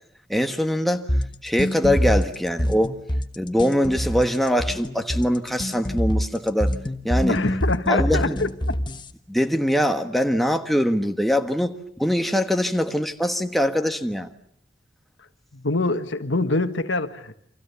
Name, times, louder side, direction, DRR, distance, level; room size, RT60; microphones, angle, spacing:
voice 1, 0.3-1.1 1.4-2.9 3.3-6.7 7.0-7.4 7.9-8.4 9.3-11.7 12.0-14.3, equal, ahead, 1.4 m, -22 dB
sound 1, 1.1-9.1, equal, 25° left, 1.3 m, -25 dB
voice 2, 7.3-8.8 15.5-17.4, left 2 dB, 85° left, 1.7 m, -25 dB
30.0 x 26.0 x 7.0 m
head